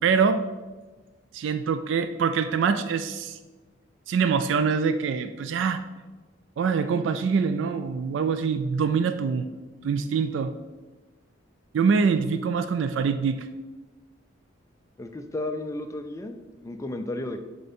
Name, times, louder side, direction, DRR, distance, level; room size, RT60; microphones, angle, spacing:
voice 1, 0.0-0.4 1.3-3.4 4.1-5.8 6.6-9.5 9.8-10.5 11.7-13.5, right 5 dB, 65° right, 10 dB, 0.3 m, -24 dB
voice 2, 15.0-17.4, left 2 dB, 15° left, 6 dB, 0.4 m, -33 dB
6.8 x 3.8 x 4.2 m, 1.2 s
head